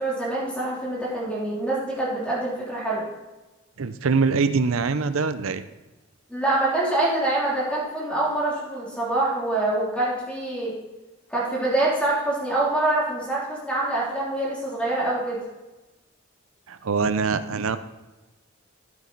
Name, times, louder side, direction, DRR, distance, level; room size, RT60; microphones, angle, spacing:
voice 1, 0.0-3.0 6.3-10.7 11.3-15.4, right 2 dB, 5° left, -6 dB, 3.0 m, -25 dB
voice 2, 3.8-5.6 16.7-17.8, right 4 dB, 80° right, 12 dB, 0.6 m, -23 dB
13.5 x 7.4 x 4.0 m, 1.1 s
head